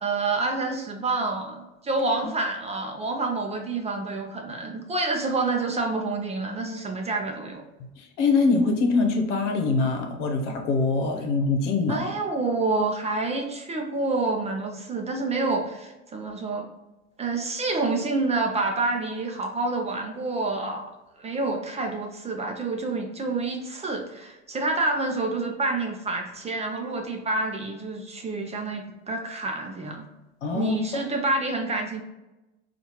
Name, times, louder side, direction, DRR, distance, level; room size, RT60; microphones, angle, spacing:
voice 1, 0.0-7.6 11.9-16.7 17.2-20.9 21.2-30.0 30.5-32.0, right 3 dB, 20° right, 2 dB, 0.5 m, -28 dB
voice 2, 8.0-12.0 30.4-30.7, left 3 dB, 80° left, 3 dB, 0.9 m, -23 dB
4.1 x 2.5 x 3.0 m, 1.0 s
supercardioid pair, 105°, 35 cm